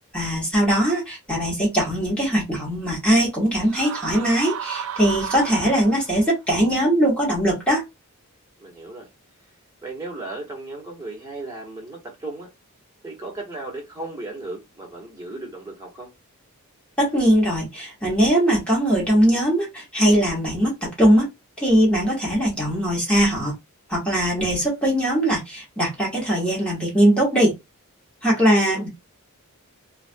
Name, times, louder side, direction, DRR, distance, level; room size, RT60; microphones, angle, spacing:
voice 1, 0.1-7.8 17.0-21.3 21.6-23.5 23.9-27.6 28.2-28.9, equal, 5° left, 1.1 m, -20 dB
sound 1, 3.6-6.3, right 8 dB, 65° right, 0.3 m, -33 dB
voice 2, 8.6-9.1 9.8-12.5 13.0-16.1 28.3-28.9, right 2 dB, 15° right, 1.1 m, -36 dB
2.4 x 2.3 x 2.6 m
head